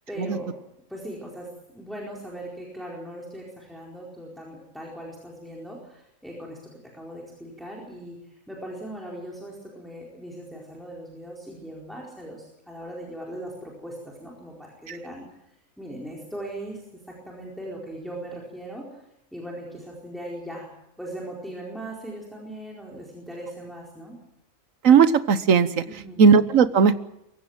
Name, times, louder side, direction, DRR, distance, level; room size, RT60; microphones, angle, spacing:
voice 1, 0.1-0.5 0.9-19.0 19.3-20.7 21.0-24.2 25.9-26.2, right 1 dB, ahead, -3 dB, 4.4 m, -39 dB
voice 2, 24.8-25.8 26.2-27.0, right 6 dB, 70° right, 13 dB, 1.4 m, -17 dB
24.0 x 15.5 x 8.9 m, 0.85 s
omnidirectional pair, 1.4 m